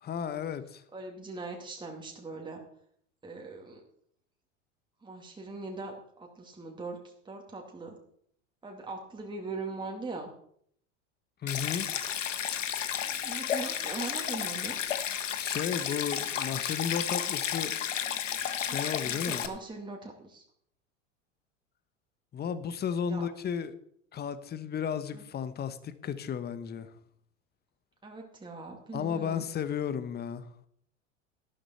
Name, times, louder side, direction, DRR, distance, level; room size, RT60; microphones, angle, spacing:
voice 1, 0.0-0.8 11.4-11.9 15.4-17.7 18.6-19.4 22.3-23.7 24.1-26.9 28.9-30.5, left 7 dB, 25° left, 13 dB, 1.2 m, -34 dB
voice 2, 0.9-2.6 3.2-3.8 5.0-8.0 8.6-10.3 13.1-14.8 18.6-20.4 23.1-23.3 25.1-25.2 28.0-29.4, right 3 dB, 10° right, 1 dB, 2.4 m, -41 dB
Stream, 11.5-19.5, left 9 dB, 80° left, 1.2 m, -32 dB
12.5 x 12.5 x 4.4 m, 0.66 s
hypercardioid pair, 85°, 37 cm